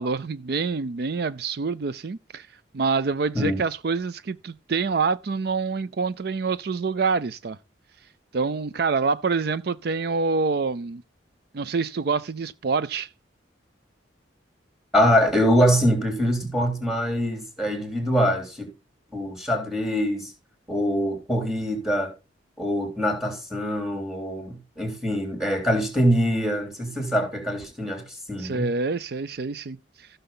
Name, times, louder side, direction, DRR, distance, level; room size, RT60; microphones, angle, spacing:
voice 1, 0.0-2.5 2.7-7.6 8.3-11.0 11.5-13.1 28.4-30.1, right 4 dB, 55° right, 0.4 m, -26 dB
voice 2, 14.9-18.7 19.1-20.3 20.7-22.1 22.6-28.7, equal, ahead, 3.3 m, -24 dB
15.0 x 6.7 x 3.9 m
head